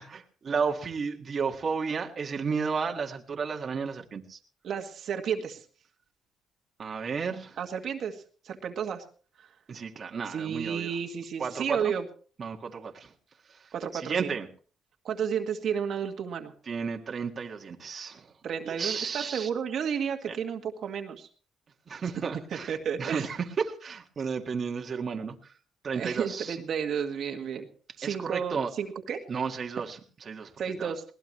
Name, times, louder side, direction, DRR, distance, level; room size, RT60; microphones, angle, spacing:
voice 1, 0.0-4.4 6.8-7.6 9.7-10.9 11.4-11.9 12.4-13.1 13.5-14.5 16.7-18.3 18.6-19.5 20.3-20.4 21.9-25.5 25.8-26.6 28.0-28.7 29.3-30.5 30.8-30.9, right 5 dB, 45° right, 2 dB, 1.9 m, -33 dB
voice 2, 4.6-5.6 7.6-9.0 9.4-9.5 10.3-12.0 13.7-14.3 15.0-16.5 18.4-21.3 22.7-23.3 25.9-27.7 28.0-29.2 30.6-31.0, right 7 dB, 65° right, 4 dB, 1.9 m, -32 dB
21.5 x 18.0 x 3.2 m, 0.41 s
cardioid pair, 90°, 0 cm